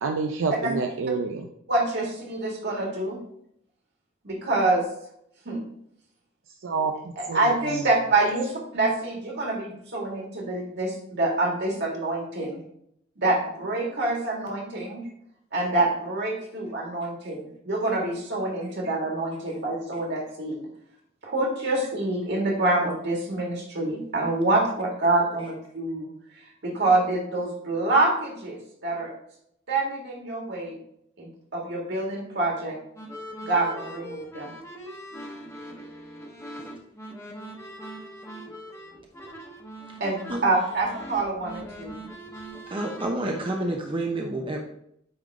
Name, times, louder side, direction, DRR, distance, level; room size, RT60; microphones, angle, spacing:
voice 1, 0.0-1.5 6.6-7.5, right 4 dB, 75° right, 3 dB, 0.5 m, -28 dB
voice 2, 1.7-3.2 4.2-4.9 5.5-5.6 7.2-12.6 13.2-15.0 15.5-20.6 21.2-26.1 26.6-29.1 29.7-30.8 31.2-32.8 33.4-34.5 40.0-40.2 40.4-42.0, right 2 dB, 55° right, -1 dB, 2.0 m, -26 dB
sound 1, 33.0-43.7, right 1 dB, 15° left, 1.0 m, -41 dB
voice 3, 42.7-44.6, right 1 dB, 25° right, 1 dB, 0.6 m, -29 dB
8.7 x 3.6 x 3.6 m, 0.72 s
head